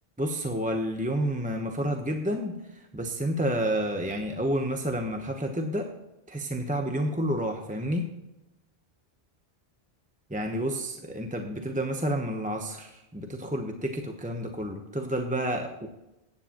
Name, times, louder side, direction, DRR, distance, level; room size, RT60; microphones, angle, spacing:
voice 1, 0.2-5.9 6.3-8.1 10.3-15.9, equal, 10° right, 3 dB, 0.8 m, -30 dB
14.5 x 9.8 x 3.0 m, 0.94 s
omnidirectional pair, 1.0 m